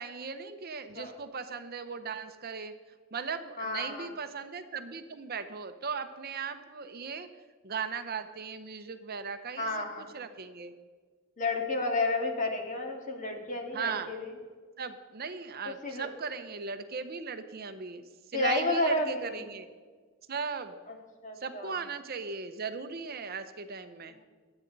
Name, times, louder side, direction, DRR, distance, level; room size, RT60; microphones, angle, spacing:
voice 1, 0.0-2.7 3.1-7.3 7.6-9.7 10.1-10.7 13.7-14.1 14.8-18.0 18.3-19.7 20.3-20.7 21.4-24.2, right 5 dB, 45° right, 9 dB, 0.8 m, -37 dB
voice 2, 3.6-4.1 9.6-10.1 11.4-14.3 15.8-16.1 18.3-19.4 20.9-21.0 21.2-21.8, left 2 dB, 35° left, 3 dB, 2.0 m, -31 dB
22.5 x 9.0 x 4.0 m, 1.5 s
head